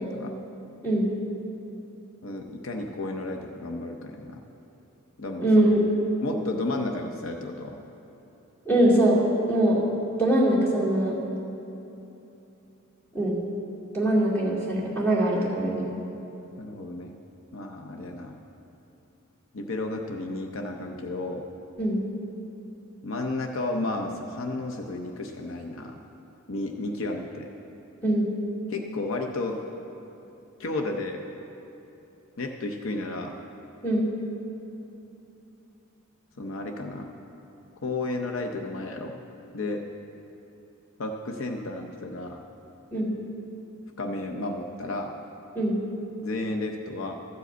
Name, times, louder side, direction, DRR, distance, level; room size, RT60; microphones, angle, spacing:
voice 1, 0.0-0.3 2.2-4.4 5.2-5.5 6.2-7.8 16.6-17.1 17.5-18.4 19.5-21.5 23.0-26.0 26.5-27.5 28.7-29.6 30.6-31.2 32.4-33.4 36.4-37.1 37.8-39.2 39.5-39.8 41.0-42.4 44.0-45.2 46.2-47.1, left 2 dB, 70° left, 3 dB, 0.7 m, -32 dB
voice 2, 5.4-5.8 8.7-9.2 9.5-9.8 10.2-11.1 13.1-13.4 13.9-15.8 21.8-22.0 28.0-28.3 33.8-34.1 42.9-43.1 45.6-45.8, right 1 dB, 10° left, -6 dB, 2.2 m, -22 dB
13.5 x 5.0 x 7.9 m, 3.0 s
head